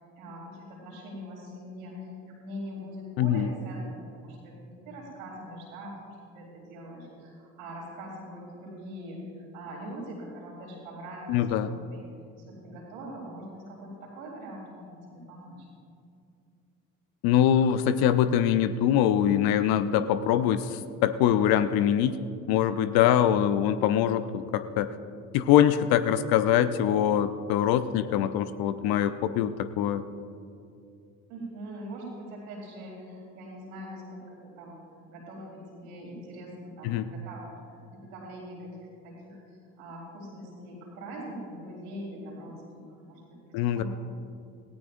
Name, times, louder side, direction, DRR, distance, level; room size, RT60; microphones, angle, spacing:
voice 1, 0.0-12.0 12.4-15.7 31.3-34.8 35.1-39.4 39.8-43.8, equal, 80° right, -2 dB, 3.8 m, -42 dB
voice 2, 3.2-3.5 11.3-11.7 17.2-22.2 22.5-24.9 25.3-30.0 36.8-37.0 43.5-43.8, left 10 dB, 60° left, 12 dB, 0.8 m, -23 dB
18.0 x 17.0 x 2.6 m, 2.5 s
hypercardioid pair, 50°, 41 cm